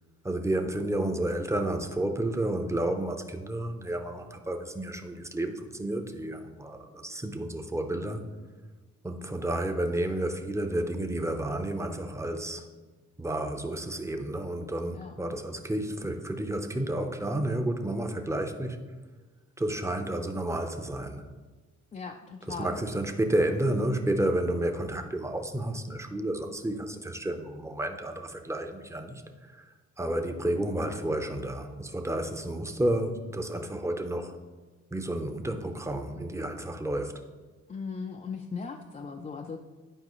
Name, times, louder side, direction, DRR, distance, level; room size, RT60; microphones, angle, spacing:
voice 1, 0.2-8.2 9.0-12.6 13.2-18.8 19.6-21.3 22.5-29.2 29.5-29.7 30.0-34.4 34.9-37.1, right 1 dB, 10° right, 5 dB, 0.7 m, -31 dB
voice 2, 21.9-22.8 37.7-39.6, left 5 dB, 25° left, 2 dB, 0.4 m, -38 dB
11.0 x 4.8 x 3.1 m, 1.3 s
cardioid pair, 90°, 30 cm